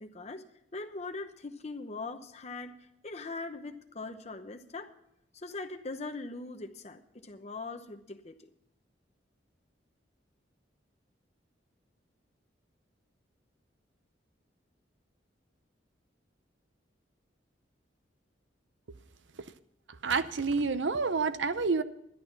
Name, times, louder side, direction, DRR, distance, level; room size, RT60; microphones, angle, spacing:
voice 1, 0.0-0.4 0.7-2.7 3.0-4.9 5.3-8.5, left 3 dB, 35° left, 7 dB, 0.8 m, -41 dB
voice 2, 20.0-21.8, right 4 dB, 85° right, 13 dB, 0.7 m, -28 dB
12.0 x 11.0 x 5.8 m, 0.80 s
head